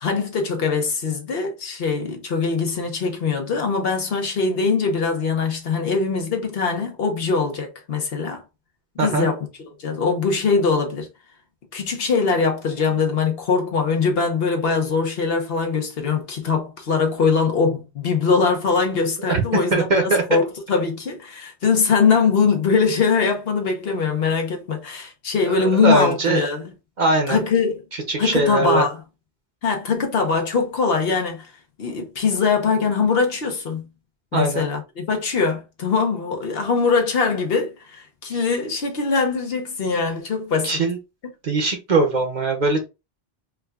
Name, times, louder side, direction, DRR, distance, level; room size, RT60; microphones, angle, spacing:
voice 1, 0.0-8.4 9.0-11.1 11.7-26.7 27.3-27.8 28.2-29.0 29.6-31.5 31.8-33.8 34.3-40.8, left 5 dB, 65° left, 1.0 m, -22 dB
voice 2, 9.0-9.3 19.3-19.4 19.7-20.2 25.5-26.5 27.0-27.4 27.9-28.8 34.3-34.6 40.6-41.0 41.4-42.9, right 3 dB, 50° right, 0.8 m, -21 dB
4.6 x 2.3 x 2.3 m
omnidirectional pair, 1.1 m